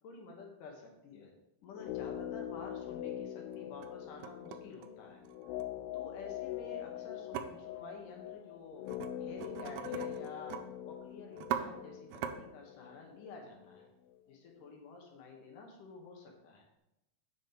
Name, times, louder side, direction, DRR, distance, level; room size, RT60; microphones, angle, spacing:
voice 1, 0.0-5.6 5.9-8.9 9.2-10.6 10.8-13.9 14.3-16.7, left 4 dB, 65° left, 1 dB, 2.6 m, -50 dB
sound 1, 1.7-13.9 14.1-14.2, left 11 dB, 85° left, 2.4 m, -43 dB
sound 2, 2.8-2.9 3.5-3.9 4.2-5.6 7.3-7.4 8.9-9.1 9.4-10.6 10.9-11.0 11.3-11.6 12.1-12.3, right 10 dB, 85° right, 2.6 m, -39 dB
7.3 x 7.2 x 4.4 m, 0.90 s
omnidirectional pair, 4.5 m